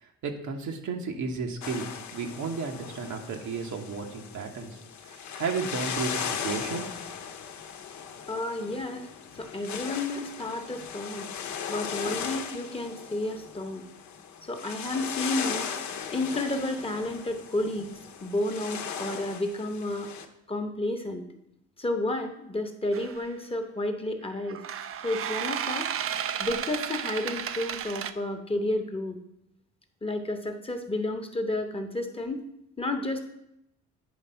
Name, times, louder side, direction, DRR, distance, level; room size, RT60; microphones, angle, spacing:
voice 1, 0.0-4.8 5.1-6.9, right 5 dB, 75° right, 3 dB, 1.2 m, -33 dB
sound 1, 1.6-20.3, left 7 dB, 70° left, 0.8 m, -37 dB
voice 2, 8.3-9.1 9.4-11.3 11.7-13.9 14.4-15.7 16.1-17.9 18.2-20.1 20.5-21.2 21.8-24.6 25.0-25.9 26.4-29.2 30.0-32.4 32.8-33.2, left 1 dB, 20° left, 6 dB, 0.9 m, -31 dB
sound 2, 22.9-23.2 24.5-28.1, right 9 dB, 50° right, 0.5 m, -33 dB
9.4 x 3.4 x 5.6 m, 0.80 s
cardioid pair, 90°, 30 cm